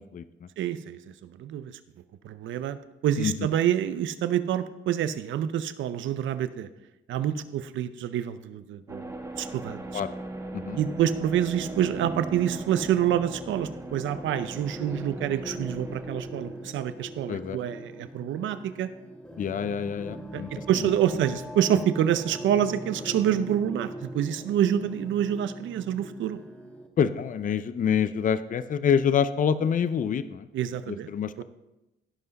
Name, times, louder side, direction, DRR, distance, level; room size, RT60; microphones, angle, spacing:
voice 1, 0.0-0.5 3.2-3.3 9.9-10.1 10.5-10.8 17.3-17.6 19.4-20.6 27.0-30.5 30.9-31.4, left 7 dB, 40° left, 13 dB, 0.6 m, -27 dB
voice 2, 0.6-1.8 2.2-2.8 3.0-6.7 7.1-10.0 10.7-18.9 20.3-26.4 30.5-31.1 31.4-31.5, right 10 dB, 75° right, 12 dB, 0.7 m, -27 dB
sound 1, 8.9-17.5, right 2 dB, 15° right, 1.4 m, -40 dB
sound 2, 11.6-26.9, equal, 5° left, 1.5 m, -41 dB
16.5 x 5.6 x 4.1 m, 0.97 s
cardioid pair, 90°, 20 cm